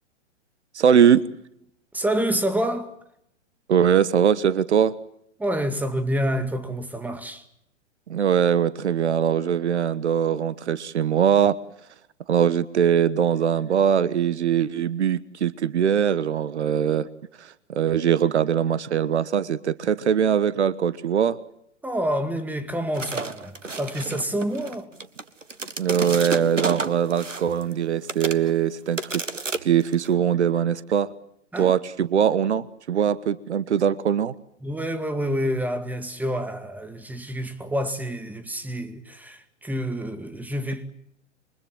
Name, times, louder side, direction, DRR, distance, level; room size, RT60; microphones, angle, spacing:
voice 1, 0.7-1.2 3.7-4.9 8.1-11.6 12.3-17.1 17.4-21.4 25.8-29.2 29.6-31.1 31.6-34.3, right 8 dB, 65° right, 1.3 m, -21 dB
voice 2, 1.9-2.9 5.4-7.4 21.8-24.9 31.5-31.7 34.6-40.9, equal, 5° right, 2.3 m, -28 dB
sound 1, 22.9-27.7 28.1-28.5 29.0-30.1, right 4 dB, 85° right, 1.7 m, -31 dB
28.5 x 24.5 x 7.7 m
figure-of-eight pair, 110°, 37 cm